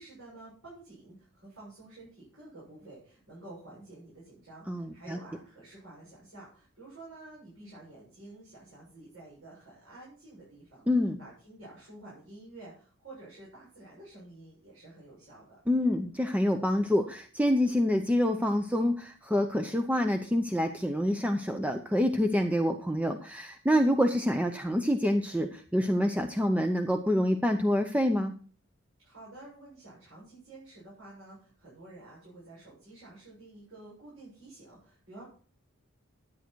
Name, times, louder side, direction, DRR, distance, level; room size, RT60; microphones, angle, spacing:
voice 1, 0.0-10.9 11.2-15.6 29.0-35.2, right 2 dB, 70° right, -7 dB, 7.3 m, -50 dB
voice 2, 4.7-5.2 10.9-11.2 15.7-28.3, left 1 dB, 5° right, 5 dB, 0.6 m, -27 dB
13.0 x 9.3 x 4.6 m, 0.43 s
head